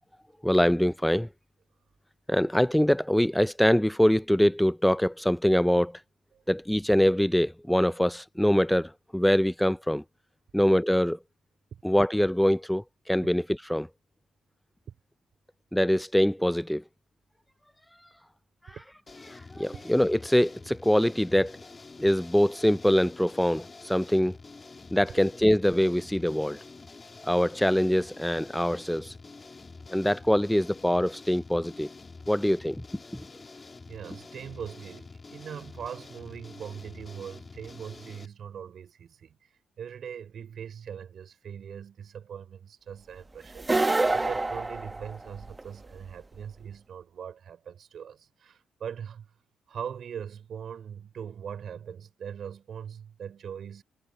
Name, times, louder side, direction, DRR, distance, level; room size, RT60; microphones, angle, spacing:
voice 1, 0.4-1.3 2.3-5.9 6.5-10.0 10.5-11.2 11.8-13.9 15.7-16.8 19.3-21.5 22.0-24.4 24.9-26.6 27.2-29.1 29.9-31.9 32.3-32.8, equal, 5° left, 0.3 m, -24 dB
sound 1, 19.1-38.3, left 3 dB, 30° left, 2.4 m, -47 dB
voice 2, 33.9-39.4 39.8-49.3 49.7-53.8, right 8 dB, 60° right, 4.1 m, -41 dB
sound 2, 43.6-45.6, right 2 dB, 15° right, 0.9 m, -26 dB
cardioid pair, 90°, 0 cm